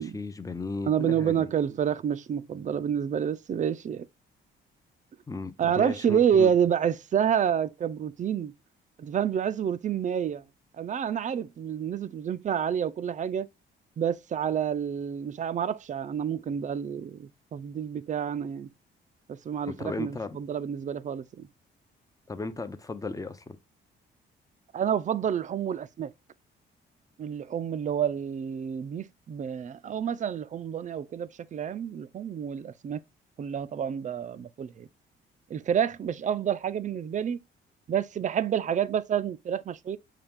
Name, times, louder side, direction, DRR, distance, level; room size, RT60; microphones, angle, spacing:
voice 1, 0.0-1.5 5.3-6.5 19.7-20.4 22.3-23.6, left 3 dB, 15° left, 0.6 m, -35 dB
voice 2, 0.9-4.1 5.6-8.5 9.0-10.4 10.8-13.5 14.0-18.7 19.3-21.5 24.7-26.1 27.2-33.0 33.4-34.9 35.5-37.4 37.9-40.0, right 8 dB, 40° right, 0.4 m, -28 dB
5.7 x 2.4 x 3.4 m
cardioid pair, 90°, 20 cm